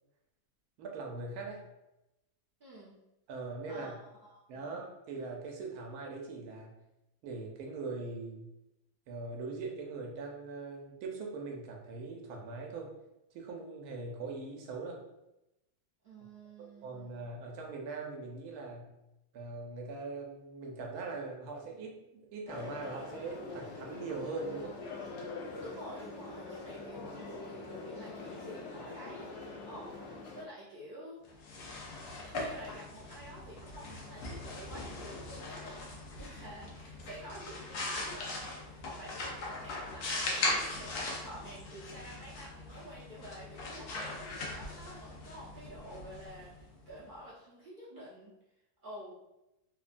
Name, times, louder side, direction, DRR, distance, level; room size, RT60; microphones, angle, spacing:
voice 1, 0.8-1.6 3.3-4.0 4.5-6.8 7.2-8.5 9.1-12.9 13.3-15.0 16.6-18.9 19.3-24.8, right 3 dB, 80° right, 1 dB, 1.1 m, -41 dB
voice 2, 2.6-2.9 3.7-4.8 16.0-17.2 25.6-29.3 29.6-31.8 32.2-35.9 36.2-48.3 48.8-49.1, right 1 dB, 55° right, -8 dB, 0.6 m, -49 dB
sound 1, 22.5-30.4, left 3 dB, 60° left, 0.8 m, -44 dB
sound 2, 31.3-47.0, left 2 dB, 85° left, 1.2 m, -40 dB
3.2 x 2.1 x 2.4 m, 0.92 s
omnidirectional pair, 1.6 m